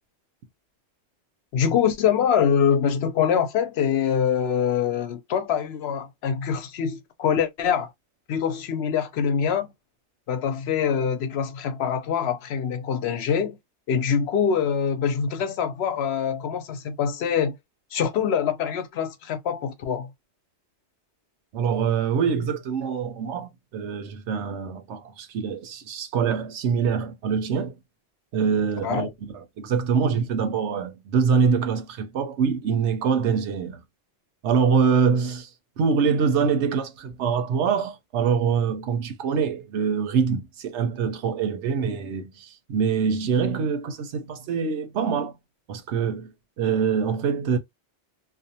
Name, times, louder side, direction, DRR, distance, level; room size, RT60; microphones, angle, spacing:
voice 1, 1.5-7.9 8.3-9.7 10.3-13.6 13.9-17.6 17.9-20.1 28.8-29.1, left 7 dB, 70° left, 0.8 m, -24 dB
voice 2, 21.5-27.8 28.3-33.8 34.4-35.5 35.8-45.3 45.7-47.6, right 6 dB, 85° right, 0.9 m, -24 dB
2.5 x 2.1 x 2.6 m
omnidirectional pair, 1.2 m